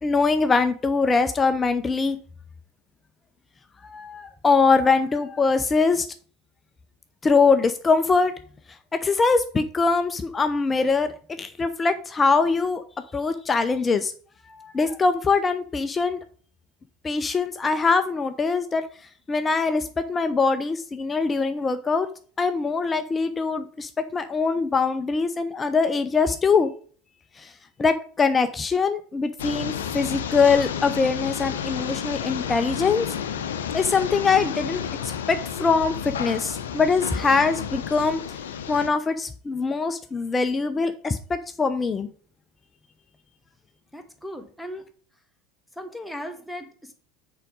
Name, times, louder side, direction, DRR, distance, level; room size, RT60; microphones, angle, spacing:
voice 1, 0.0-2.2 3.8-6.1 7.2-8.3 9.0-12.8 13.1-14.1 14.5-16.2 17.0-18.8 19.3-22.1 22.4-26.7 27.4-27.5 27.8-33.1 33.7-38.2 38.7-42.1, left 4 dB, 25° left, 9 dB, 0.7 m, -23 dB
sound 1, 29.4-38.9, left 8 dB, 75° left, 0.7 m, -31 dB
voice 2, 43.9-44.8 45.8-46.9, equal, 5° left, 5 dB, 1.5 m, -37 dB
6.6 x 4.9 x 5.3 m, 0.43 s
figure-of-eight pair, 75°, 0 cm